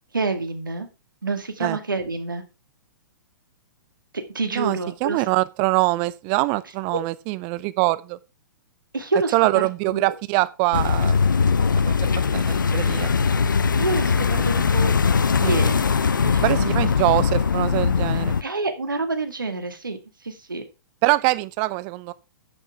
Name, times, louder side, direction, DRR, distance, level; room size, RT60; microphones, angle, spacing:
voice 1, 0.1-0.9 1.2-2.4 4.1-5.2 6.9-7.0 8.9-10.2 13.8-14.9 15.4-15.8 16.2-16.9 18.1-20.6, right 3 dB, 80° right, 2.1 m, -28 dB
voice 2, 4.5-8.2 9.3-11.2 11.8-11.9 12.3-13.1 15.4-15.6 16.4-18.3 21.0-22.1, right 21 dB, 35° right, 0.6 m, -23 dB
sound 1, 10.7-18.4, left 5 dB, 75° left, 0.6 m, -20 dB
10.5 x 6.4 x 4.6 m
figure-of-eight pair, 115°, 11 cm